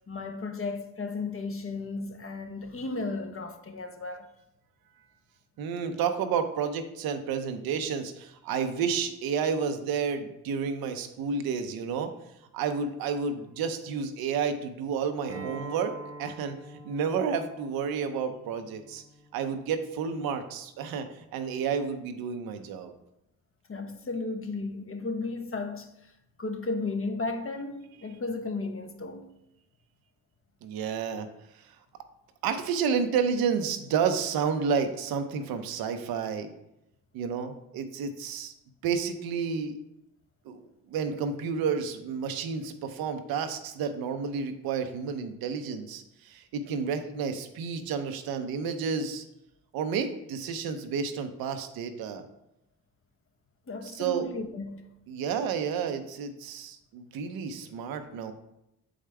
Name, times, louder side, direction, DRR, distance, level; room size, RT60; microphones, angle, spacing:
voice 1, 0.1-4.3 23.7-26.1 26.4-29.3 53.7-54.8, left 3 dB, 40° left, 1.0 m, -34 dB
voice 2, 5.6-12.1 12.5-15.9 16.2-16.6 16.8-19.0 19.3-22.9 30.6-31.3 31.6-31.7 32.4-36.5 37.1-38.5 38.8-39.7 40.4-49.2 49.7-52.2 53.9-54.3 55.1-58.3, right 6 dB, 90° right, 0.7 m, -30 dB
Acoustic guitar, 15.3-20.5, right 2 dB, 40° right, 0.9 m, -46 dB
7.2 x 5.0 x 3.3 m
cardioid pair, 65°, 35 cm